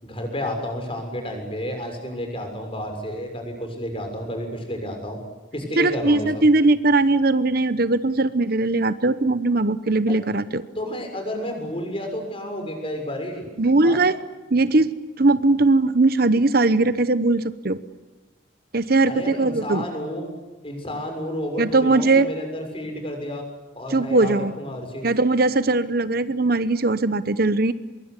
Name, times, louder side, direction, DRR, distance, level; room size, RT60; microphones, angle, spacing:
voice 1, 0.0-5.2 5.5-6.4 10.1-10.2 10.7-13.5 13.8-14.0 19.1-20.3 20.6-23.4 23.7-25.1, equal, 30° left, 4 dB, 6.8 m, -31 dB
voice 2, 5.8-10.6 13.6-14.1 14.5-14.9 15.2-17.8 18.7-19.8 21.6-22.3 23.9-24.5 25.0-27.7, right 2 dB, 50° right, 14 dB, 0.9 m, -19 dB
25.0 x 23.0 x 9.8 m, 1.2 s
head